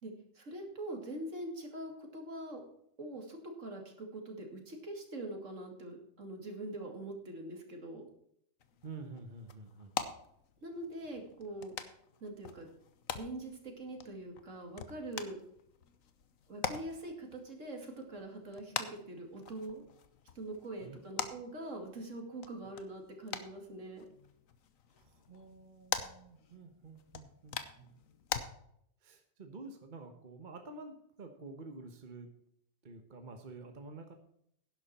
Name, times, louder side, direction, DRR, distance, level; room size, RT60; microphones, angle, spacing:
voice 1, 0.0-2.6 3.0-8.1 10.6-11.7 12.2-12.7 13.1-15.4 16.5-19.8 20.3-24.1, right 1 dB, 65° right, 2 dB, 2.8 m, -43 dB
sound 1, 8.6-28.4, left 7 dB, 80° left, 1.4 m, -44 dB
voice 2, 8.8-9.9 20.8-21.2 25.0-27.9 29.0-32.3 32.8-34.1, right 3 dB, 35° right, 5 dB, 1.3 m, -49 dB
11.5 x 11.0 x 4.3 m, 0.70 s
omnidirectional pair, 1.4 m